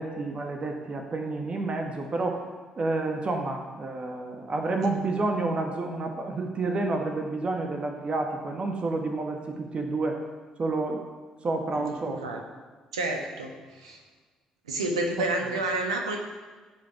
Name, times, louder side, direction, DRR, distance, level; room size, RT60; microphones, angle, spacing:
voice 1, 0.0-2.4 2.8-10.2 10.6-11.0 11.4-12.4, right 3 dB, 40° right, 3 dB, 1.5 m, -29 dB
voice 2, 12.9-14.0 14.7-16.2, right 2 dB, 80° right, 3 dB, 1.2 m, -29 dB
15.5 x 5.3 x 5.8 m, 1.4 s
figure-of-eight pair, 45°, 3 cm